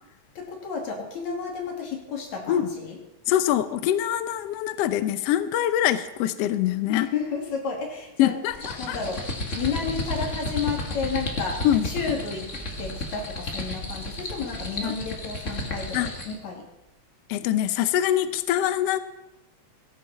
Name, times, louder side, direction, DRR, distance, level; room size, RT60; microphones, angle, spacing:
voice 1, 0.4-3.0 6.9-8.4 8.8-9.2 9.5-12.5 12.8-16.6, left 5 dB, 60° left, 1 dB, 3.8 m, -31 dB
voice 2, 3.3-7.1 8.2-9.0 11.6-11.9 14.8-14.9 15.9-16.1 17.3-19.0, left 12 dB, 80° left, 11 dB, 1.4 m, -24 dB
sound 1, 8.5-16.4, left 1 dB, 30° left, 1.7 m, -33 dB
17.5 x 15.0 x 4.2 m, 0.96 s
omnidirectional pair, 3.7 m